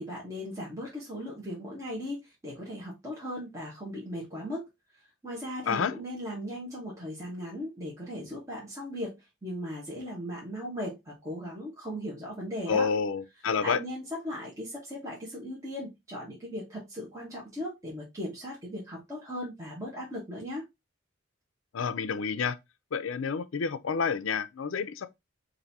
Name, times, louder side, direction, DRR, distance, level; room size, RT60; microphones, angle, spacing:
voice 1, 0.0-4.7 5.2-9.2 9.4-12.9 13.6-20.6, equal, 15° right, 1.2 m, -37 dB
voice 2, 12.7-13.8 21.7-22.6 22.9-25.1, left 6 dB, 80° left, 0.5 m, -29 dB
5.2 x 2.7 x 2.7 m
head